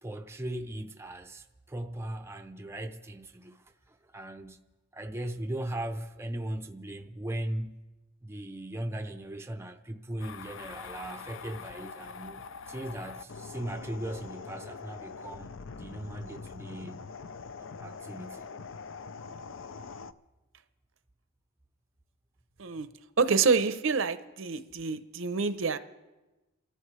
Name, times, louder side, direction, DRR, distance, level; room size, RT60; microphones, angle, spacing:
voice 1, 0.0-4.7 4.9-7.8 8.2-15.5 15.8-17.1 17.6-18.5, right 1 dB, 10° right, 0.6 m, -38 dB
sound 1, 10.2-20.1, left 5 dB, 60° left, 0.5 m, -44 dB
voice 2, 23.2-25.8, right 5 dB, 65° right, 0.8 m, -27 dB
29.0 x 13.5 x 3.3 m
head